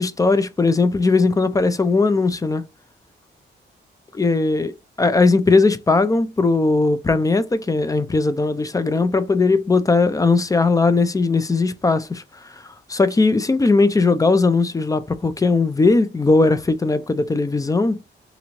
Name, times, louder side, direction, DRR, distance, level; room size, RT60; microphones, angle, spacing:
voice 1, 0.0-2.6 4.2-4.7 5.0-12.6 12.9-18.0, left 3 dB, 15° left, 0.3 m, -18 dB
2.9 x 2.5 x 2.8 m
wide cardioid pair, 120°, 20 cm